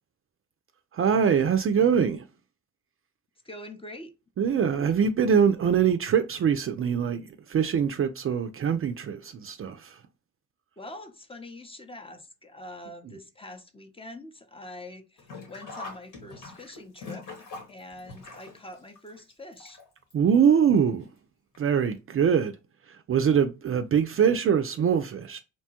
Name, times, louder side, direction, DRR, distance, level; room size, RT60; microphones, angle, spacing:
voice 1, 0.9-2.2 4.4-10.0 20.1-21.1 21.6-22.6 22.9-25.4, right 7 dB, 40° right, 0.4 m, -23 dB
voice 2, 3.4-4.1 10.8-19.8, left 1 dB, 15° left, 0.6 m, -44 dB
Sink (filling or washing), 15.2-20.1 20.4-20.5 21.5-21.6 22.0-22.1, left 3 dB, 65° left, 1.4 m, -43 dB
2.9 x 2.1 x 2.8 m
supercardioid pair, 60°, 35 cm